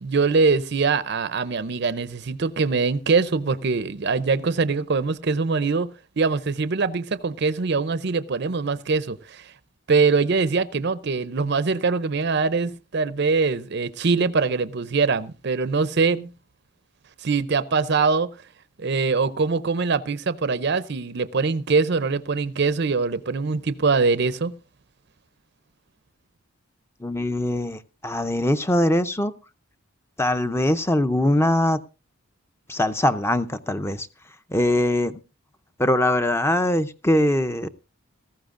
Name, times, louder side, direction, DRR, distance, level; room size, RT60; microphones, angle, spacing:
voice 1, 0.0-5.9 6.2-9.5 9.9-16.3 17.2-18.3 18.8-24.5, right 4 dB, 50° right, 0.5 m, -23 dB
voice 2, 27.0-29.3 30.2-31.8 32.7-34.1 34.5-35.2 35.8-37.7, left 1 dB, 10° left, 0.6 m, -22 dB
18.0 x 14.5 x 2.5 m
head